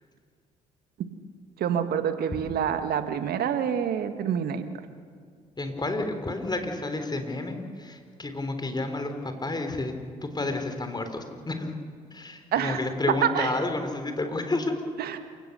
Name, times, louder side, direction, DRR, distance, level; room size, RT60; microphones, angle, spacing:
voice 1, 1.6-4.6 12.5-12.8 13.2-13.5 15.0-15.2, right 8 dB, 60° right, 9 dB, 1.7 m, -27 dB
voice 2, 5.6-9.9 10.2-11.7 12.1-14.7, left 2 dB, 25° left, 6 dB, 3.8 m, -30 dB
28.0 x 17.0 x 6.8 m, 2.1 s
hypercardioid pair, 50°, 18 cm